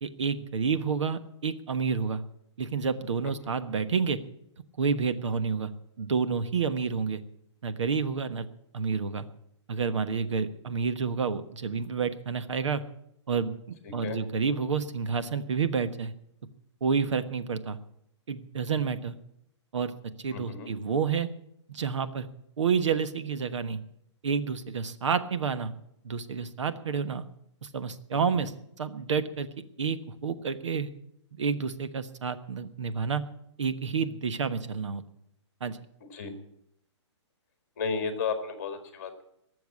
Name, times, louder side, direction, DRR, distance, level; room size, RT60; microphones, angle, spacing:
voice 1, 0.0-2.2 2.6-4.2 4.8-5.7 6.0-7.2 7.6-8.5 8.7-9.3 9.7-12.8 13.3-13.5 13.9-16.1 16.8-17.8 18.3-19.2 19.7-19.9 20.2-21.3 21.7-22.3 22.6-23.8 24.2-25.7 26.0-27.2 27.6-28.5 28.8-29.5 29.8-30.9 31.3-33.2 33.6-35.0 35.6-35.8, right 5 dB, 75° right, 11 dB, 1.3 m, -29 dB
voice 2, 13.8-14.2 20.3-20.7 28.1-28.5 36.1-36.3 37.8-39.2, left 5 dB, 30° left, 7 dB, 1.9 m, -33 dB
19.0 x 7.1 x 8.4 m, 0.75 s
hypercardioid pair, 180°, 15 cm